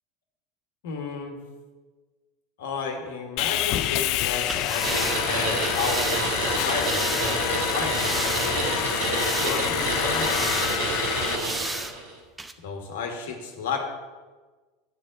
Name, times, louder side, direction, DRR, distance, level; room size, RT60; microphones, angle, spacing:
voice 1, 0.8-1.4 2.6-6.4 6.6-10.7 12.6-13.8, left 5 dB, 75° left, 3 dB, 1.6 m, -33 dB
Sawing, 3.4-11.3, left 13 dB, 55° left, 0.4 m, -28 dB
sound 1, 4.4-7.4 7.8-8.7 9.0-9.8 10.1-10.8 11.2-11.9 12.4-12.5, right 2 dB, 10° right, 0.7 m, -33 dB
sound 2, 4.8-12.1, right 2 dB, 70° right, 2.9 m, -28 dB
10.5 x 4.4 x 7.4 m, 1.3 s
hypercardioid pair, 85°, 0 cm